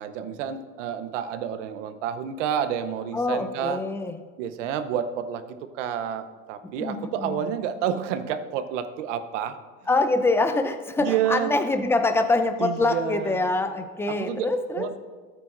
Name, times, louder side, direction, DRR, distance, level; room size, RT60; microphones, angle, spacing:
voice 1, 0.0-3.8 4.4-9.6 11.0-11.5 12.6-13.5 14.1-14.5 14.7-15.0, right 9 dB, 80° right, 11 dB, 0.9 m, -29 dB
voice 2, 3.1-4.2 6.8-7.5 9.9-14.9, left 2 dB, 5° left, 7 dB, 0.6 m, -25 dB
14.0 x 8.9 x 2.6 m, 1.5 s
supercardioid pair, 110°, 36 cm